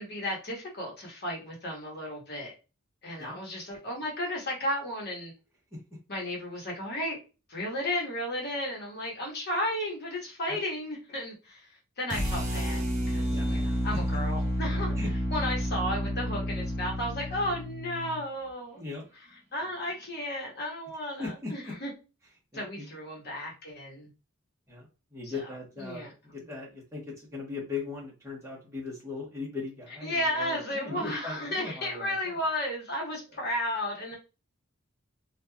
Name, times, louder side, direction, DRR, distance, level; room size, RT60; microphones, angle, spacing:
voice 1, 0.0-2.5 3.0-5.3 6.1-7.2 7.5-11.7 12.0-14.9 15.3-18.8 19.5-21.9 22.5-24.1 25.3-25.4 25.8-26.1 30.0-34.2, left 1 dB, 50° left, -2 dB, 1.0 m, -33 dB
sound 1, 12.1-18.2, equal, 35° right, 1.3 m, -30 dB
voice 2, 13.3-13.8 15.0-15.1 18.7-19.0 21.2-21.7 22.5-22.9 24.7-32.4 33.3-33.4, left 3 dB, 15° right, -4 dB, 1.0 m, -39 dB
3.1 x 2.3 x 2.2 m, 0.31 s
head